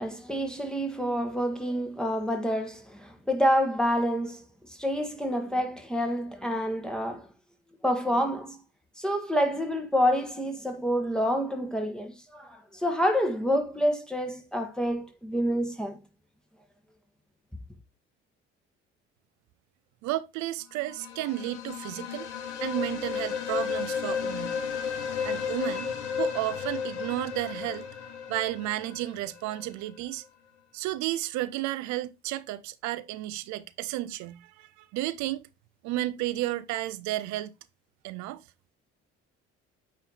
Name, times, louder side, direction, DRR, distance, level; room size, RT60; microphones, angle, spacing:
voice 1, 0.0-7.3 7.8-8.6 9.0-16.0, equal, ahead, 1.7 m, -28 dB
voice 2, 20.0-22.3 22.6-24.6 25.2-25.9 26.2-27.9 28.3-30.2 30.7-35.4 35.8-37.5 38.0-38.4, right 15 dB, 55° right, 0.6 m, -32 dB
sound 1, 20.9-29.7, left 7 dB, 85° left, 0.9 m, -33 dB
8.7 x 3.2 x 4.1 m
figure-of-eight pair, 50°, 34 cm